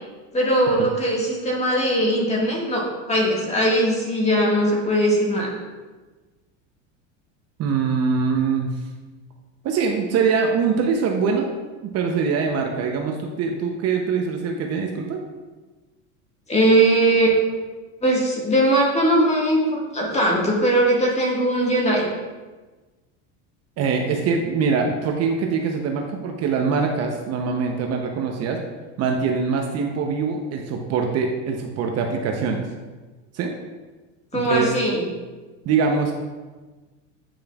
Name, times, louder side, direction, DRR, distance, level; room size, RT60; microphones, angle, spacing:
voice 1, 0.3-2.8 3.1-5.5 16.5-17.6 18.0-22.1 34.3-35.0, right 1 dB, 15° left, -3 dB, 1.6 m, -20 dB
voice 2, 7.6-8.7 9.6-11.5 11.8-15.2 23.8-28.6 29.0-32.6 33.3-33.5 34.3-34.7 35.7-36.1, right 5 dB, 40° right, 2 dB, 0.7 m, -23 dB
8.9 x 5.1 x 2.4 m, 1.3 s
supercardioid pair, 120°, 37 cm